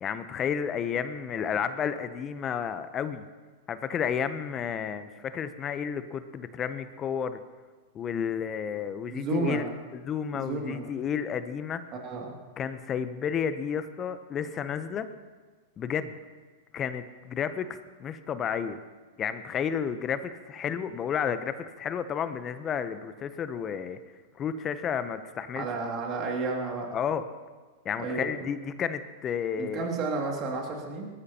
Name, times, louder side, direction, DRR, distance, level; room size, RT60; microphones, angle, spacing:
voice 1, 0.0-3.2 3.7-7.4 7.9-11.8 12.6-15.1 15.8-16.1 16.7-18.8 19.2-24.0 24.4-25.7 26.9-27.2 27.8-29.9, left 7 dB, 30° left, 12 dB, 0.8 m, -31 dB
voice 2, 9.1-9.6 10.3-10.9 12.0-12.3 25.5-26.9 28.0-28.5 29.6-31.1, right 3 dB, 40° right, 0 dB, 2.4 m, -32 dB
20.0 x 13.0 x 2.9 m, 1.3 s
hypercardioid pair, 105°, 0 cm